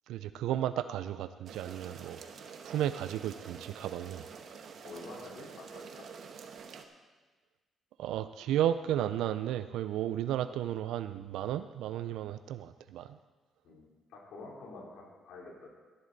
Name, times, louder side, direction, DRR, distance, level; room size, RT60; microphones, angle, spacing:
voice 1, 0.1-2.2 2.6-4.2 8.0-13.1, right 11 dB, 90° right, 12 dB, 0.3 m, -33 dB
sound 1, 1.5-6.8, right 6 dB, 60° right, 1.0 m, -47 dB
voice 2, 4.8-6.0 13.6-13.8 14.1-15.7, left 3 dB, 85° left, -3 dB, 3.3 m, -47 dB
13.0 x 11.0 x 4.0 m, 1.3 s
cardioid pair, 90°, 0 cm